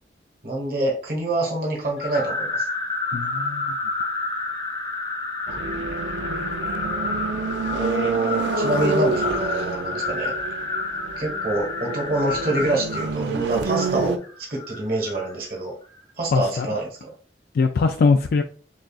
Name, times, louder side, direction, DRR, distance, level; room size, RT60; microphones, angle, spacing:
voice 1, 0.4-2.7 7.7-10.3 11.2-14.2 14.5-15.7 16.2-17.1, right 2 dB, 55° right, -2 dB, 1.3 m, -26 dB
sound 1, 2.0-15.3, left 3 dB, 30° left, 0.9 m, -30 dB
voice 2, 3.1-3.7 16.3-16.8 17.5-18.4, left 4 dB, 60° left, 5 dB, 0.3 m, -21 dB
sound 2, 5.5-14.2, right 3 dB, 80° right, 0.4 m, -28 dB
6.2 x 2.4 x 2.4 m, 0.42 s
head